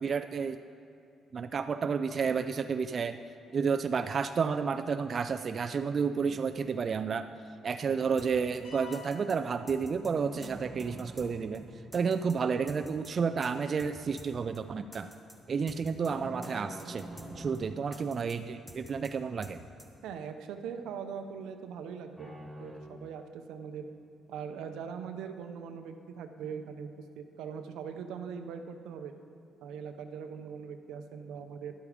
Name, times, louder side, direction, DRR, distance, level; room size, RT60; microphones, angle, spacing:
voice 1, 0.0-0.6 1.3-3.2 3.5-7.3 7.6-11.7 11.9-15.1 15.5-17.1 17.4-19.6, right 5 dB, 45° right, 8 dB, 0.4 m, -31 dB
sound 1, 6.2-7.4 10.0-12.7 16.0-18.8 22.2-22.8, right 1 dB, 5° right, 1.3 m, -46 dB
sound 2, 8.2-8.3 8.5-8.6 8.9-9.4 9.7-10.1 10.4-10.5 10.8-11.3 11.5-11.6 11.9-12.4 12.7-13.1 13.4-13.5 13.8-13.9 14.2-14.3 14.5-14.6 14.9-15.4 15.7-16.1 16.4-16.5 16.8-17.3 17.5-17.6 17.9-18.4 18.7-19.1 19.4-19.5 19.8-19.9, equal, 10° left, 1.6 m, -50 dB
sound 3, 8.6-10.5, left 6 dB, 55° left, 2.4 m, -51 dB
voice 2, 20.0-23.8 24.3-29.1 29.6-31.7, right 7 dB, 90° right, 7 dB, 0.7 m, -41 dB
11.5 x 8.4 x 5.0 m, 2.6 s
cardioid pair, 90°, 0 cm